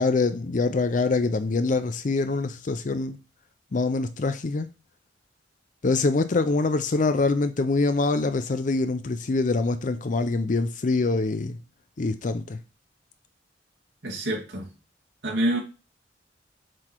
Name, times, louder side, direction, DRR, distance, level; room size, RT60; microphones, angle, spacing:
voice 1, 0.0-3.2 3.7-4.7 5.8-11.6 12.0-12.6, left 3 dB, 45° left, 0.5 m, -24 dB
voice 2, 14.0-14.7 15.2-15.6, right 1 dB, 85° right, 2.2 m, -26 dB
7.5 x 4.1 x 4.5 m
head